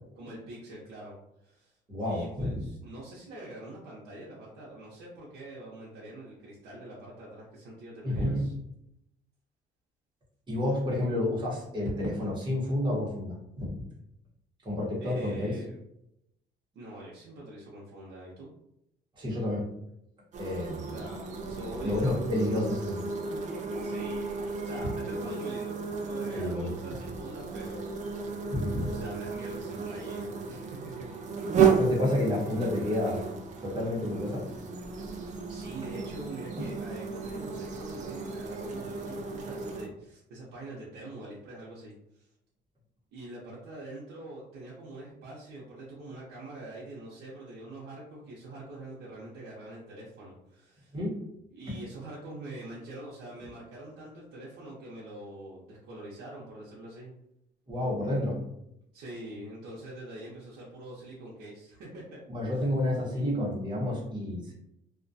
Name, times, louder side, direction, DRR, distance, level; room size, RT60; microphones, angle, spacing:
voice 1, 0.2-1.2 1.4-8.5 15.0-15.7 16.8-18.5 20.9-22.7 23.8-28.5 28.9-31.1 35.3-42.3 43.1-51.0 51.5-57.1 58.9-62.2 62.5-62.6, right 1 dB, 80° right, -6 dB, 0.6 m, -44 dB
voice 2, 1.9-2.6 8.0-8.4 10.5-13.7 14.6-15.6 19.2-19.7 20.4-20.9 21.8-23.0 26.4-26.7 28.5-28.9 31.7-33.2 33.6-34.5 36.6-36.7 50.9-51.2 57.7-58.4 62.3-64.5, left 1 dB, 25° right, -4 dB, 0.9 m, -30 dB
sound 1, 20.3-39.9, right 5 dB, 40° right, 0.4 m, -33 dB
2.3 x 2.1 x 2.6 m, 0.81 s
cardioid pair, 135°, 18 cm